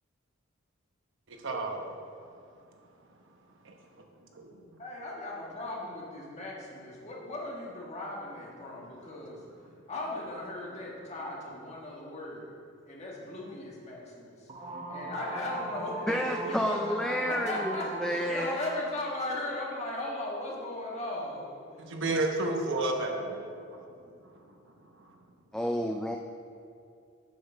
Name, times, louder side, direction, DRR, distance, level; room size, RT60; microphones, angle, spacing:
voice 1, 1.3-1.9 3.6-3.7 4.3-4.5 21.8-23.5, right 2 dB, 60° right, 3 dB, 1.0 m, -31 dB
voice 2, 4.8-9.4 9.9-12.5 12.9-21.9, left 1 dB, 35° left, -4 dB, 1.6 m, -37 dB
sound 1, 14.5-19.0, right 2 dB, 25° right, 0.7 m, -39 dB
voice 3, 16.1-18.6 25.5-26.2, equal, 5° left, 2 dB, 0.3 m, -30 dB
7.6 x 5.8 x 5.6 m, 2.4 s
head